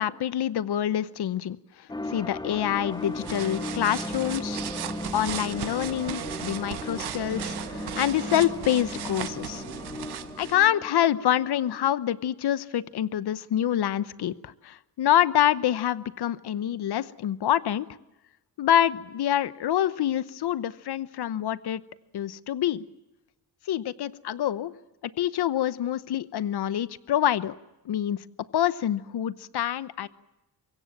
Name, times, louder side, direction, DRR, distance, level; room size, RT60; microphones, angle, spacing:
voice 1, 0.0-4.6 5.1-9.6 10.4-17.9 18.6-21.8 22.1-22.8 23.7-24.7 25.0-27.5 27.8-28.2 28.5-30.1, left 11 dB, 75° left, 15 dB, 1.0 m, -26 dB
sound 1, 1.9-11.9, left 1 dB, 10° left, 0.8 m, -37 dB
sound 2, 2.9-10.7, right 10 dB, 70° right, 1.2 m, -37 dB
24.5 x 23.0 x 7.4 m, 1.0 s
wide cardioid pair, 150°, 40 cm